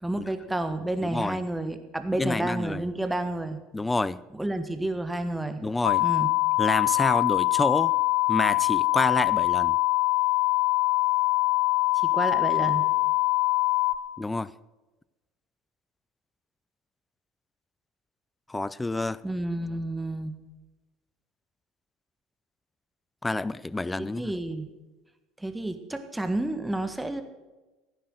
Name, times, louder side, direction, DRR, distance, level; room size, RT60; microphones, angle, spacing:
voice 1, 0.0-3.6 4.3-5.6 6.0-6.3 12.1-12.8 19.2-20.3 24.0-24.7 25.4-27.2, right 1 dB, 5° right, 1.5 m, -30 dB
voice 2, 1.0-1.4 2.2-2.8 3.7-4.2 5.6-6.0 6.6-7.9 8.3-9.8 14.2-14.5 18.5-19.2 23.2-24.3, left 2 dB, 15° left, 0.5 m, -28 dB
sound 1, 5.8-14.0, left 20 dB, 65° left, 0.6 m, -23 dB
15.5 x 9.5 x 6.4 m
figure-of-eight pair, 65°, 0 cm